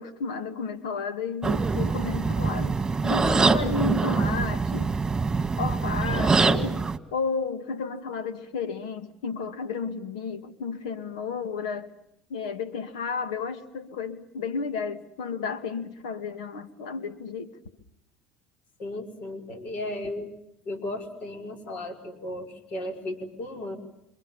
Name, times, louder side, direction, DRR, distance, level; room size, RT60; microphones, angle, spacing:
voice 1, 0.0-2.7 3.0-4.9 5.6-11.9 12.3-17.5, left 5 dB, 90° left, 2.4 m, -32 dB
sound 1, 1.4-7.0, right 4 dB, 20° right, 2.1 m, -24 dB
voice 2, 18.8-20.3 20.7-23.8, left 1 dB, 50° left, 5.2 m, -35 dB
27.0 x 26.0 x 7.2 m
supercardioid pair, 90°, 3 cm